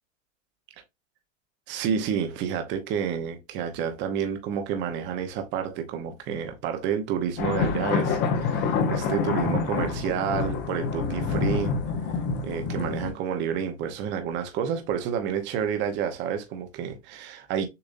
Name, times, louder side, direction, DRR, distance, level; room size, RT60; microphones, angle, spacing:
voice 1, 1.7-11.7 12.1-12.2 12.4-17.7, right 8 dB, 30° right, 0.8 m, -29 dB
sound 1, 7.4-13.1, left 5 dB, 30° left, 0.9 m, -27 dB
6.8 x 2.6 x 2.5 m
supercardioid pair, 155°, 38 cm